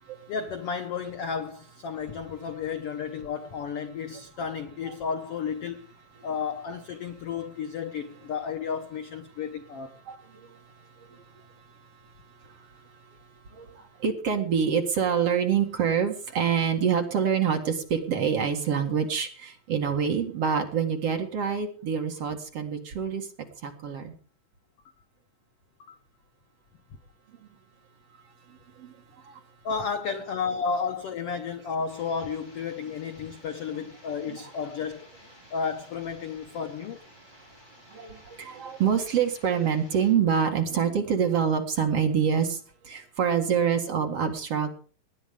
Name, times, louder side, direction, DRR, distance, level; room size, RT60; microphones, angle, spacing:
voice 1, 0.3-5.8 6.2-10.0 25.8-25.9 29.6-35.1 35.5-37.0, left 6 dB, 75° left, 1.4 m, -32 dB
voice 2, 10.1-10.5 11.0-11.2 13.5-23.3 23.6-24.1 28.8-28.9 29.2-29.4 34.2-34.4 37.9-42.6 42.8-44.7, right 7 dB, 50° right, 2.5 m, -26 dB
sound 1, 31.9-40.1, left 1 dB, 10° left, 5.8 m, -54 dB
19.0 x 10.5 x 5.1 m
omnidirectional pair, 3.9 m